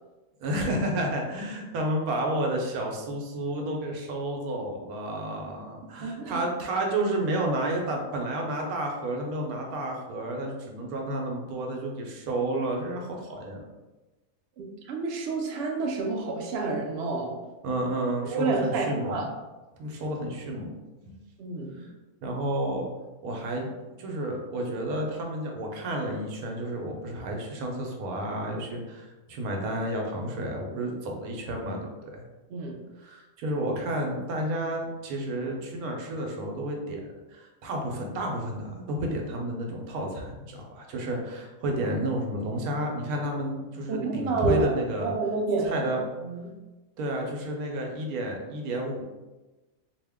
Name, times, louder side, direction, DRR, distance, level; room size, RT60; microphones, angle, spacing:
voice 1, 0.4-13.6 17.6-19.2 19.8-20.7 21.0-21.1 21.8-21.9 22.2-22.9 23.2-23.7 24.0-32.2 33.0-37.0 37.3-45.1 45.6-46.0 47.0-49.0, right 1 dB, 85° right, 1 dB, 1.1 m, -31 dB
voice 2, 6.0-6.4 14.6-17.4 18.2-19.3 21.4-21.9 32.5-32.8 43.9-44.7 45.0-45.8 46.2-46.5, right 4 dB, 65° right, 0 dB, 0.7 m, -29 dB
2.8 x 2.1 x 3.4 m, 1.2 s
omnidirectional pair, 1.5 m